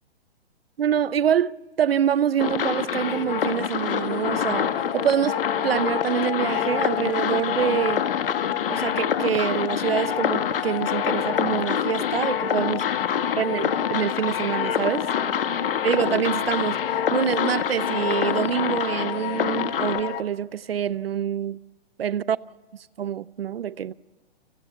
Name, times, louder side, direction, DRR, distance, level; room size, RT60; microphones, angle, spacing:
voice 1, 0.8-5.4 5.6-8.0 8.7-12.8 13.4-15.1 15.8-21.6 22.0-22.4 23.0-23.9, right 9 dB, 65° right, 0.7 m, -26 dB
sound 1, 2.4-20.0, left 7 dB, 60° left, 1.9 m, -26 dB
sound 2, 3.7-20.2, left 18 dB, 20° left, 0.7 m, -32 dB
30.0 x 20.0 x 8.2 m
hypercardioid pair, 135°, 32 cm